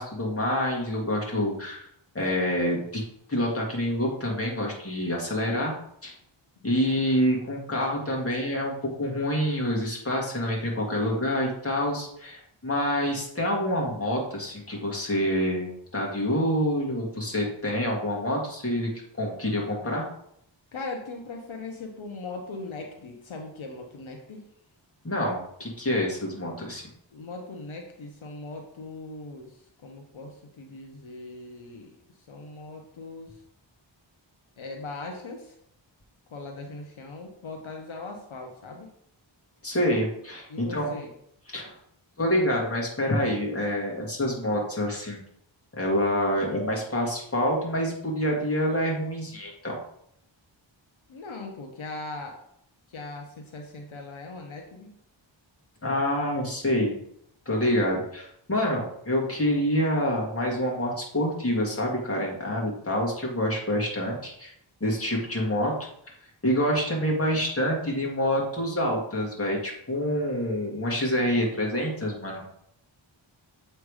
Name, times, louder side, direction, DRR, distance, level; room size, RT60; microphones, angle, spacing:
voice 1, 0.0-1.9 2.2-3.0 3.3-5.7 6.0-6.1 6.6-18.9 19.2-20.1 25.0-26.8 39.6-40.9 41.5-41.7 42.2-45.2 45.8-49.8 55.8-57.0 57.5-64.5 64.8-65.7 66.4-72.4, equal, 30° left, -2 dB, 1.9 m, -27 dB
voice 2, 6.6-7.0 20.7-24.4 27.1-31.9 32.3-33.4 34.6-35.6 36.3-38.9 40.5-41.1 51.1-52.4 52.9-54.9, left 3 dB, 80° left, 2 dB, 0.9 m, -40 dB
7.3 x 3.3 x 4.8 m, 0.72 s
wide cardioid pair, 75°, 47 cm